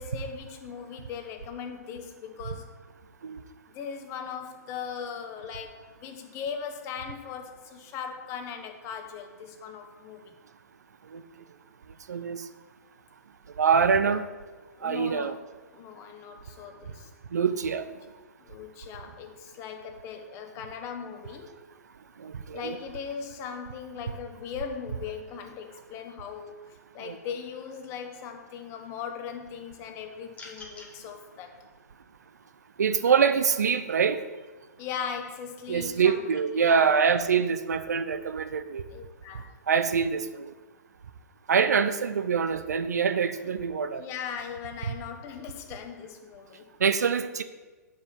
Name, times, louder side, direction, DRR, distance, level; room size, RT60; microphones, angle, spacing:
voice 1, 0.0-2.8 3.7-10.3 14.1-14.2 14.8-15.4 15.7-17.1 18.4-21.6 22.5-31.6 34.8-36.3 36.6-37.1 38.9-39.6 44.0-46.7, left 7 dB, 30° left, 1.1 m, -39 dB
voice 2, 12.1-12.4 13.6-14.2 14.8-15.3 17.3-17.9 22.2-22.8 27.0-27.2 32.8-34.2 35.7-38.8 39.7-40.5 41.5-44.0 46.8-47.4, right 6 dB, 70° right, 0.6 m, -25 dB
sound 1, 30.3-30.9, left 3 dB, 15° left, 1.5 m, -44 dB
7.8 x 5.6 x 7.1 m
figure-of-eight pair, 120°, 9 cm